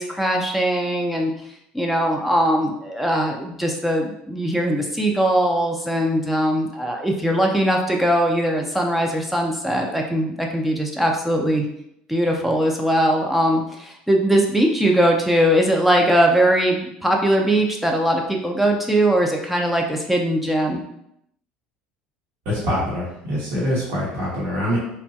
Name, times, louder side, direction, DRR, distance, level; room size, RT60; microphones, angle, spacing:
voice 1, 0.0-1.3 1.7-11.7 12.1-20.8, right 1 dB, 5° right, 0 dB, 0.4 m, -20 dB
voice 2, 22.4-24.8, left 1 dB, 55° right, -8 dB, 0.9 m, -24 dB
2.9 x 2.1 x 2.7 m, 0.77 s
hypercardioid pair, 70°, 5 cm